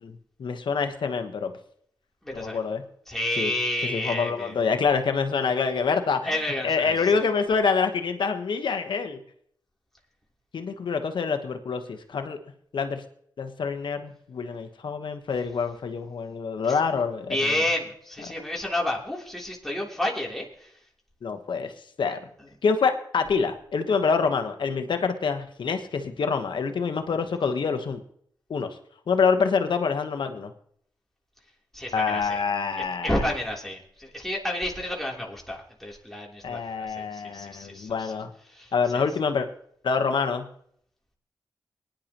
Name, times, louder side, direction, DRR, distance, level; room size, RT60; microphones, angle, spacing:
voice 1, 0.0-1.5 2.3-2.8 3.4-3.5 3.8-9.2 10.5-12.4 12.7-13.0 13.4-17.6 18.2-18.3 21.2-21.7 22.0-22.2 22.6-28.0 28.5-28.8 29.1-30.5 31.9-33.3 36.4-38.3 38.7-39.5 39.8-40.4, left 5 dB, 80° left, 7 dB, 1.2 m, -26 dB
voice 2, 2.2-2.6 3.1-4.5 6.2-7.2 16.7-16.8 17.3-20.5 31.7-32.4 33.0-38.1 38.5-39.0, left 1 dB, 5° left, -3 dB, 3.3 m, -30 dB
19.0 x 10.5 x 3.0 m, 0.65 s
cardioid pair, 45°, 8 cm